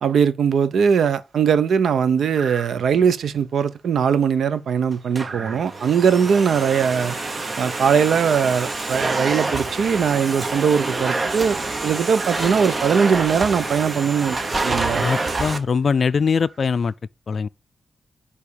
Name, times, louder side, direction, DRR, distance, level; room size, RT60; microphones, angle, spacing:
voice 1, 0.0-7.1 7.6-11.6 11.8-14.4 14.6-15.0, right 7 dB, 90° right, 0.8 m, -20 dB
sound 1, 1.2-1.6 2.3-3.1 3.6-3.8 4.0-10.3 11.0-12.9 13.9-14.0 14.4-14.5 15.1-15.3 15.8-16.9, right 4 dB, 70° right, 1.8 m, -41 dB
Domestic sounds home sounds, 4.9-15.6, right 3 dB, 35° right, 1.2 m, -27 dB
sound 2, 8.7-9.4 9.7-9.8 10.1-13.6 13.8-14.0 14.5-15.2, right 1 dB, 15° right, 2.3 m, -39 dB
voice 2, 15.0-16.9 17.3-17.5, left 5 dB, 55° left, 0.3 m, -21 dB
9.7 x 3.5 x 6.9 m
wide cardioid pair, 105°, 0 cm